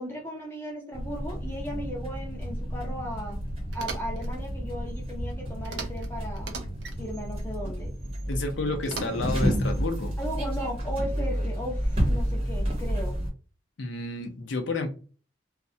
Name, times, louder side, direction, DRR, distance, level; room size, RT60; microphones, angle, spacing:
voice 1, 0.0-3.4 3.7-6.6 7.0-7.9 10.2-13.2, equal, 10° left, -1 dB, 0.6 m, -36 dB
sound 1, 0.9-13.3, equal, 30° right, 0.8 m, -30 dB
sound 2, 3.7-4.3 5.6-6.1 6.3-7.0 8.8-9.5, right 4 dB, 65° right, 0.5 m, -38 dB
voice 2, 8.3-10.2 13.8-14.9, left 3 dB, 80° left, 5 dB, 0.5 m, -30 dB
2.3 x 2.0 x 2.6 m, 0.37 s
head